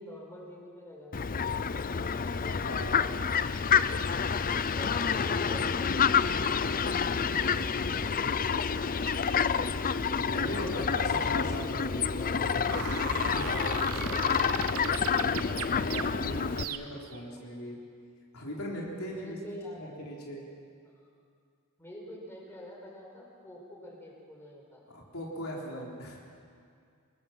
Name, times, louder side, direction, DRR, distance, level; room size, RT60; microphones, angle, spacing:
voice 1, 0.0-2.7 4.5-6.8 7.4-9.1 17.4-17.5 18.9-19.9 21.0-21.1 21.8-24.8, left 1 dB, 10° left, -3 dB, 6.0 m, -47 dB
Fowl, 1.1-16.6, left 6 dB, 40° left, 0.6 m, -28 dB
voice 2, 2.6-3.3 10.3-17.8 18.3-19.4 19.8-20.4 24.9-26.2, left 1 dB, 70° left, -2 dB, 4.1 m, -40 dB
sound 1, 12.7-17.2, right 7 dB, 85° right, 1.0 m, -38 dB
27.5 x 20.0 x 7.6 m, 2.3 s
head